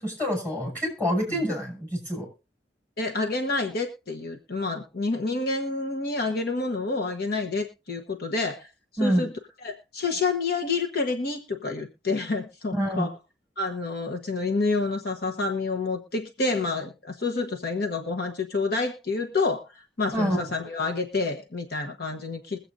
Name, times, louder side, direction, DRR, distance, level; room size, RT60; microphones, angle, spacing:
voice 1, 0.0-2.3 9.0-9.3 12.7-13.1 20.1-20.4, equal, 10° left, -1 dB, 6.1 m, -26 dB
voice 2, 3.0-8.7 9.0-9.3 9.6-13.1 13.6-22.6, left 3 dB, 60° left, 4 dB, 1.1 m, -28 dB
22.0 x 7.8 x 2.6 m, 0.30 s
head